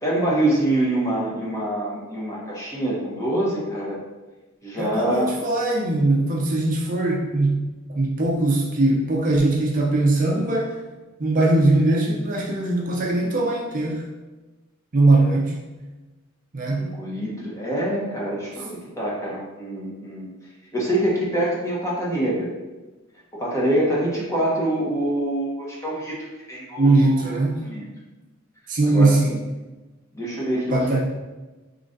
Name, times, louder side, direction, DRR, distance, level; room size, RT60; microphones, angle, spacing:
voice 1, 0.0-4.0 4.6-5.3 16.8-20.3 20.7-22.5 23.3-27.4 27.6-27.8 28.8-29.1 30.1-30.8, right 1 dB, 15° left, -5 dB, 1.0 m, -25 dB
voice 2, 4.7-7.7 7.9-10.8 11.2-14.1 14.9-15.6 16.5-16.9 26.8-27.7 28.7-29.4 30.7-31.0, right 2 dB, 40° right, -1 dB, 0.6 m, -20 dB
3.8 x 3.1 x 3.8 m, 1.2 s
head